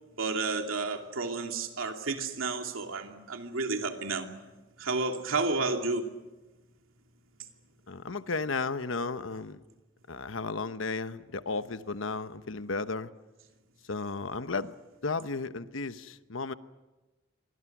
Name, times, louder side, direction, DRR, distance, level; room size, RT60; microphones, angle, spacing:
voice 1, 0.2-4.3 4.8-6.1, right 3 dB, 80° right, 4 dB, 2.8 m, -31 dB
voice 2, 7.9-9.6 10.1-13.1 13.8-14.8 15.0-16.5, left 3 dB, 70° left, 12 dB, 1.0 m, -34 dB
29.0 x 24.0 x 6.1 m, 1.1 s
head